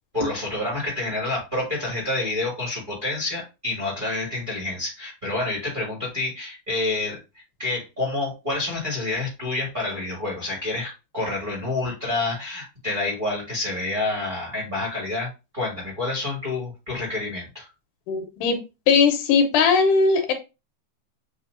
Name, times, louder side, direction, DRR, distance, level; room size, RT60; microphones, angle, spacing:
voice 1, 0.1-7.2 7.6-17.6, left 2 dB, 25° right, -4 dB, 1.2 m, -28 dB
voice 2, 18.1-18.6 18.9-20.3, left 5 dB, 85° left, 5 dB, 2.4 m, -19 dB
7.3 x 2.7 x 2.5 m, 0.27 s
omnidirectional pair, 3.6 m